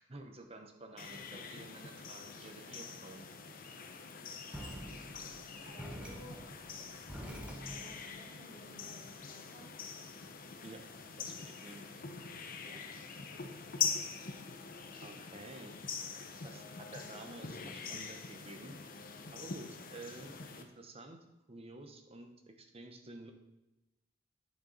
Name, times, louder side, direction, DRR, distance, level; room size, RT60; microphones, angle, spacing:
voice 1, 0.0-3.2 10.6-10.8 11.2-11.8 15.0-15.7 16.4-19.0 19.3-21.2 21.5-23.3, right 2 dB, 30° right, 5 dB, 1.0 m, -51 dB
sound 1, 1.0-20.6, left 6 dB, 45° left, 0.8 m, -44 dB
sound 2, 4.5-8.0, equal, 5° right, 1.2 m, -47 dB
voice 2, 5.6-6.4 7.2-9.7 12.6-12.8 13.1-13.5, equal, 50° right, -7 dB, 3.5 m, -55 dB
9.6 x 6.9 x 4.1 m, 0.96 s
head